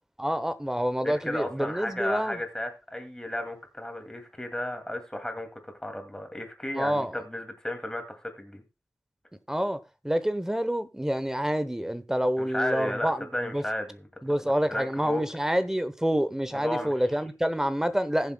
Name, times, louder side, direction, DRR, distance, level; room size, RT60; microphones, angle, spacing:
voice 1, 0.2-2.4 6.8-7.1 9.5-13.6 14.2-18.3, equal, 10° right, 0.8 m, -28 dB
voice 2, 1.0-8.6 12.4-14.1 14.4-15.2 16.5-16.9, left 1 dB, 10° left, 2.2 m, -34 dB
19.5 x 7.3 x 2.2 m
wide cardioid pair, 85°, 6 cm